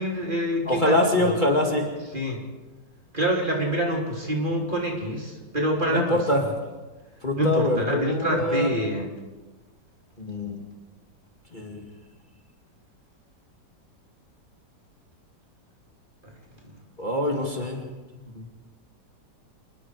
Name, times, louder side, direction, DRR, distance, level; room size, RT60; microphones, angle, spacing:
voice 1, 0.0-1.3 2.1-2.4 3.1-6.2 7.4-9.1, equal, 30° right, -1 dB, 3.7 m, -26 dB
voice 2, 0.7-1.9 5.9-6.4 7.2-8.7 10.2-10.6 11.5-11.8 17.0-17.8 18.4-18.5, left 1 dB, 25° left, 0 dB, 2.4 m, -24 dB
27.0 x 20.5 x 4.8 m, 1.2 s
omnidirectional pair, 1.8 m